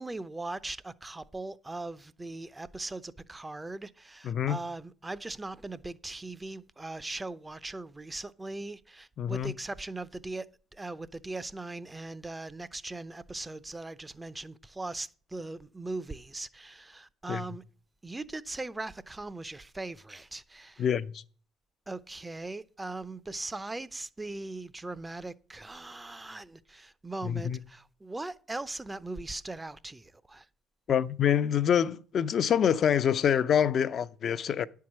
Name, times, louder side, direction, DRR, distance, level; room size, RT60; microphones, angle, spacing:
voice 1, 0.0-17.6 18.0-20.8 21.9-30.5, right 2 dB, 15° right, 0.6 m, -39 dB
voice 2, 4.2-4.6 9.2-9.5 17.3-17.4 20.8-21.2 27.3-27.6 30.9-34.7, left 8 dB, 55° left, 0.5 m, -26 dB
10.0 x 4.7 x 7.3 m
hypercardioid pair, 65°, 0 cm